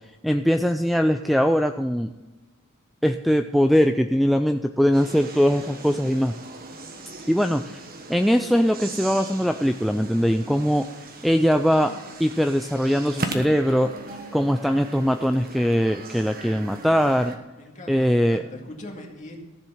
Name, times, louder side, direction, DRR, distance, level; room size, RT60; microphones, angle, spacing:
voice 1, 0.2-2.1 3.0-6.3 7.3-7.8 8.1-10.9 11.2-11.9 12.2-13.9 14.3-17.3 17.9-18.4, equal, ahead, 7 dB, 0.3 m, -21 dB
sound 1, 4.9-17.4, right 3 dB, 45° right, 1.3 m, -38 dB
voice 2, 17.5-19.4, left 1 dB, 35° left, 1 dB, 2.1 m, -40 dB
14.5 x 7.5 x 5.6 m, 1.2 s
head